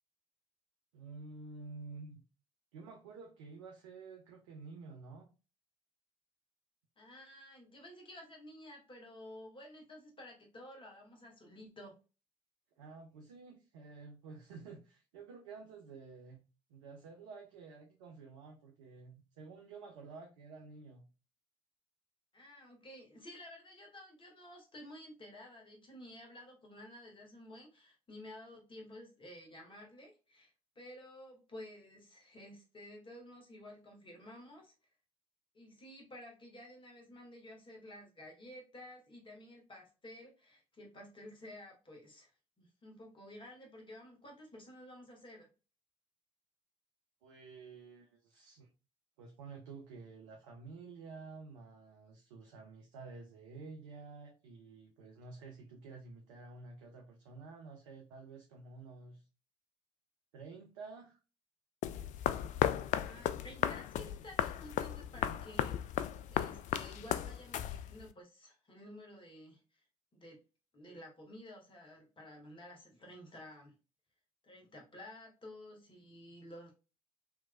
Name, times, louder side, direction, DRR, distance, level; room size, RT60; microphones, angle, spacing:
voice 1, 0.9-2.2 2.7-5.3 12.8-16.4 16.7-21.1 47.2-48.7 49.2-59.3 60.3-61.2, right 4 dB, 75° right, 0.7 m, -51 dB
voice 2, 7.0-12.0 22.3-34.7 35.5-42.3 42.6-45.5 63.0-66.0 66.3-69.8 70.1-70.4 70.7-73.8 74.4-76.7, left 1 dB, 30° left, 1.9 m, -52 dB
sound 1, 61.8-68.1, left 11 dB, 50° left, 0.4 m, -35 dB
4.5 x 3.1 x 2.3 m
figure-of-eight pair, 50°, 16 cm